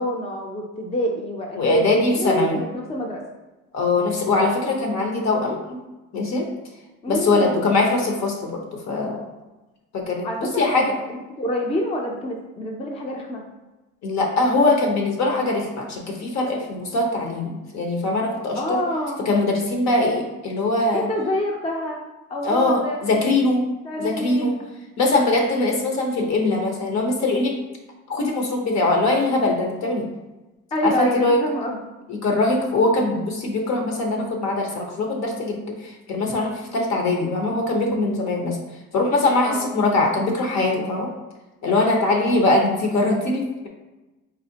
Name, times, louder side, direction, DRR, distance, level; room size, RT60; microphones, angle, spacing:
voice 1, 0.0-3.2 7.0-7.6 10.2-13.5 18.6-19.4 20.9-22.0 22.3-23.4 23.8-24.6 30.7-31.8 39.4-39.7 41.7-41.8, equal, 20° left, 0 dB, 0.5 m, -27 dB
voice 2, 1.6-2.6 3.7-5.8 6.1-6.5 7.1-9.3 9.9-10.9 14.0-18.8 19.3-21.1 22.4-23.6 24.0-24.5 25.0-27.6 28.1-30.1 30.8-31.4 32.1-38.6 38.9-41.1 41.6-43.7, left 2 dB, 60° left, 1 dB, 1.0 m, -22 dB
4.0 x 3.6 x 2.8 m, 1.1 s
cardioid pair, 130°, 31 cm